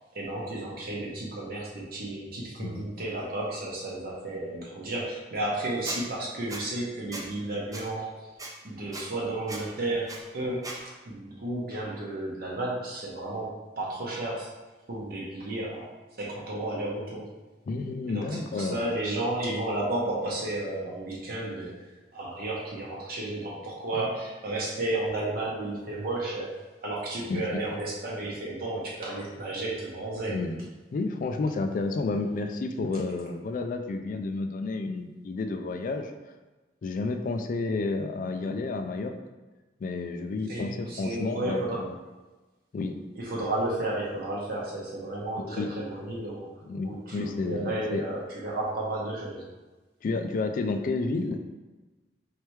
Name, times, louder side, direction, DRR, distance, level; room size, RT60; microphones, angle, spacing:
voice 1, 0.1-8.3 8.6-14.5 14.9-15.9 16.2-17.2 18.1-30.4 40.5-41.8 43.2-46.5 46.8-49.5, right 2 dB, 55° right, -4 dB, 0.8 m, -33 dB
voice 2, 2.6-2.9 17.7-18.8 24.0-24.1 27.3-27.6 30.3-30.6 30.9-36.1 36.8-39.1 39.8-41.9 42.7-43.0 45.4-45.7 46.6-48.0 50.0-51.4, left 3 dB, 50° left, 6 dB, 0.3 m, -31 dB
Squeak, 5.8-6.0 6.5-6.6 7.1-7.3 7.7-7.8 8.4-8.5 8.9-9.0 9.5-9.6 10.1-10.2 10.6-10.8, right 2 dB, 20° right, 0.5 m, -37 dB
4.3 x 3.3 x 3.1 m, 1.2 s
head